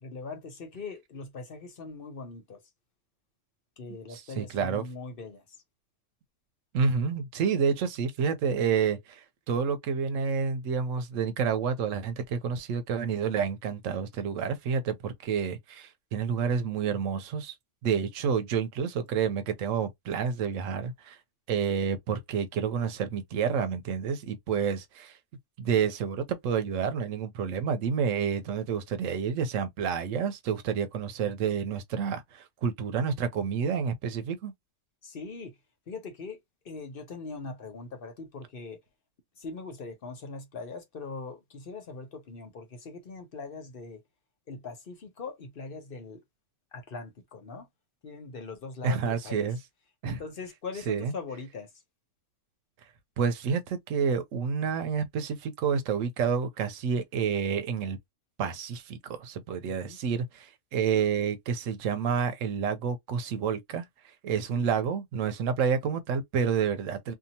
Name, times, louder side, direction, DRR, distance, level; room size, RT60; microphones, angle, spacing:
voice 1, 0.0-2.6 3.8-5.6 35.0-35.5 35.9-36.4 36.6-38.8 39.4-44.0 44.5-46.2 46.7-47.7 48.0-49.5 50.0-51.7 59.7-60.0 64.4-64.7, left 4 dB, 55° left, 0.8 m, -41 dB
voice 2, 4.1-4.8 6.7-17.6 17.8-21.2 21.5-25.2 25.6-34.5 48.8-49.6 50.0-50.2 50.9-51.1 53.2-58.0 58.4-67.1, right 6 dB, 90° right, 1.0 m, -29 dB
2.8 x 2.3 x 2.7 m
omnidirectional pair, 1.3 m